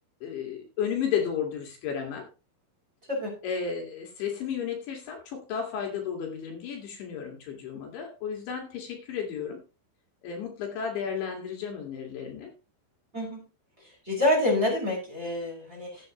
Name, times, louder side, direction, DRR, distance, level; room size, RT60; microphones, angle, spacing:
voice 1, 0.2-2.3 3.4-9.6 10.2-12.5, left 7 dB, 65° left, 1 dB, 4.2 m, -33 dB
voice 2, 13.1-13.5 14.0-16.1, left 1 dB, 15° right, -2 dB, 5.5 m, -27 dB
15.5 x 9.0 x 3.0 m, 0.31 s
omnidirectional pair, 5.7 m